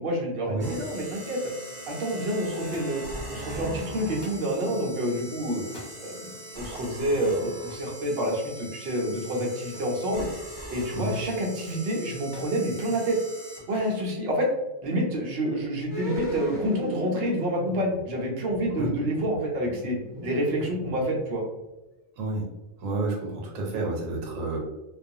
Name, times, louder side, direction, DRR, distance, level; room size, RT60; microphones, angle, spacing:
voice 1, 0.0-1.4 1.9-3.0 3.3-5.6 6.0-6.3 6.5-10.3 10.7-13.2 13.7-14.5 14.8-20.0 20.2-21.4, equal, 60° right, -2 dB, 0.7 m, -28 dB
sound 1, 0.6-14.0, right 1 dB, ahead, 1.1 m, -41 dB
Thump thud, 2.7-3.2 4.2-4.5 5.6-6.0 7.2-7.5 9.7-10.0 10.4-11.0 12.3-12.6 13.7-14.0 14.9-15.4 16.4-16.5, left 1 dB, 65° left, 1.0 m, -47 dB
sound 2, 15.9-21.3 21.6-21.7, equal, 25° left, 0.8 m, -37 dB
voice 2, 22.2-22.5 22.8-24.6, right 2 dB, 75° right, -1 dB, 1.0 m, -30 dB
2.3 x 2.3 x 2.6 m, 1.0 s
omnidirectional pair, 1.4 m